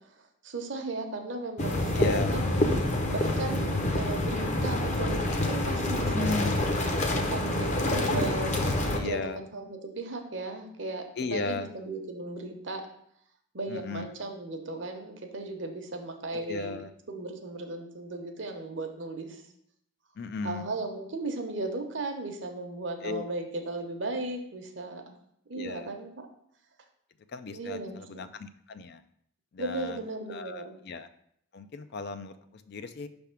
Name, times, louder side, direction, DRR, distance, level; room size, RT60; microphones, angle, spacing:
voice 1, 0.2-2.6 3.1-6.5 7.1-12.8 13.5-16.8 17.1-19.4 20.4-25.1 25.5-26.3 27.5-28.3 29.6-30.8, right 2 dB, 60° right, 4 dB, 0.8 m, -36 dB
sound 1, 1.6-9.0, left 1 dB, 35° left, 0.7 m, -27 dB
voice 2, 1.9-2.4 6.1-6.6 8.9-9.4 11.2-11.7 13.7-14.1 16.3-16.9 20.2-20.7 23.0-23.2 25.5-25.9 27.3-29.0 29.5-30.0 30.3-31.1 31.5-32.3 32.7-33.1, left 4 dB, 50° left, 11 dB, 0.3 m, -35 dB
5.8 x 3.5 x 5.7 m, 0.71 s
head